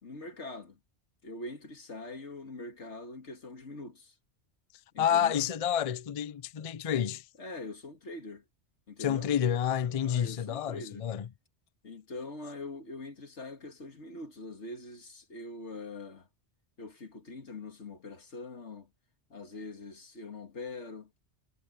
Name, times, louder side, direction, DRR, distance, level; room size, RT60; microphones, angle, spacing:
voice 1, 0.0-0.8 1.2-4.1 4.9-5.5 7.4-8.4 8.9-9.3 10.0-11.0 11.8-16.3 16.8-18.9 19.3-21.1, left 2 dB, 85° left, 2.4 m, -43 dB
voice 2, 5.0-7.3 9.0-11.3, left 9 dB, 45° left, 0.5 m, -29 dB
omnidirectional pair, 1.1 m